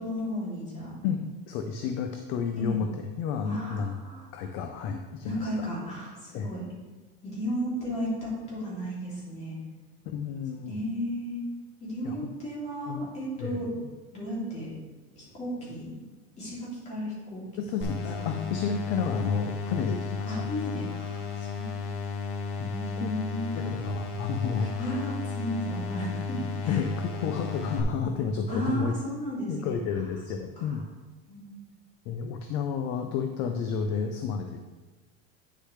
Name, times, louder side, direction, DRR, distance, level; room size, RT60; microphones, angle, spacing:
voice 1, 0.0-0.9 2.6-2.8 3.4-4.3 5.2-6.6 7.2-9.6 10.7-11.4 11.8-13.7 14.1-14.7 15.2-16.0 16.4-17.4 17.8-17.9 18.2-18.4 20.2-21.8 22.6-23.6 24.6-26.8 28.5-29.8 30.6-30.7 31.3-31.7, equal, 20° left, -6 dB, 2.8 m, -34 dB
voice 2, 1.0-2.9 3.2-3.9 4.3-5.7 6.3-6.5 10.1-10.7 12.0-12.3 12.9-13.1 13.4-13.6 17.6-20.3 22.6-22.7 23.0-23.1 23.5-24.9 26.7-28.9 29.5-30.9 32.1-34.6, left 6 dB, 40° left, 5 dB, 0.5 m, -31 dB
sound 1, 17.8-27.8, left 4 dB, 65° left, 1.1 m, -34 dB
9.6 x 6.6 x 3.2 m, 1.3 s
cardioid pair, 170°, 30 cm